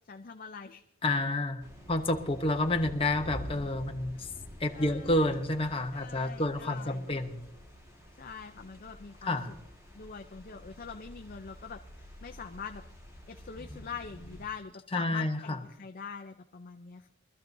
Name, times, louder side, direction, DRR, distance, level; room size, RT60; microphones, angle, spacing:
voice 1, 0.0-0.8 4.7-5.2 5.9-7.1 8.2-9.4 9.9-12.8 13.3-17.1, left 5 dB, 40° left, 5 dB, 0.5 m, -44 dB
voice 2, 1.0-4.3 4.6-7.5 9.2-9.5 14.9-15.6, left 2 dB, 25° left, 4 dB, 0.9 m, -29 dB
sound 1, 1.6-14.5, equal, 15° right, 1.7 m, -48 dB
24.0 x 13.0 x 2.7 m, 0.88 s
head